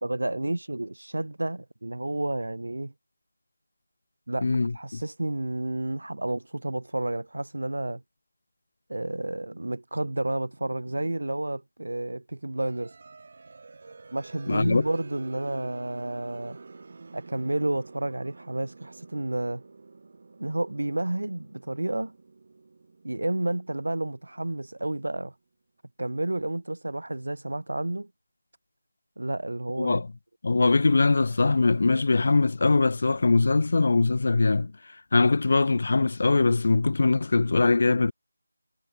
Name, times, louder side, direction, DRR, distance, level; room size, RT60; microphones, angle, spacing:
voice 1, 0.0-2.9 4.3-4.5 4.7-8.0 8.9-13.0 14.1-16.6 17.1-19.6 20.4-22.1 23.0-25.3 26.0-28.1 29.2-30.0 30.5-30.6, right 1 dB, 75° right, 2.0 m, -30 dB
voice 2, 4.4-5.0 14.5-14.8 29.8-30.1 30.4-34.7 35.1-38.1, left 3 dB, 50° left, 0.3 m, -22 dB
sound 1, 12.6-25.1, right 4 dB, 45° right, 2.2 m, -48 dB
figure-of-eight pair, 165°, 0 cm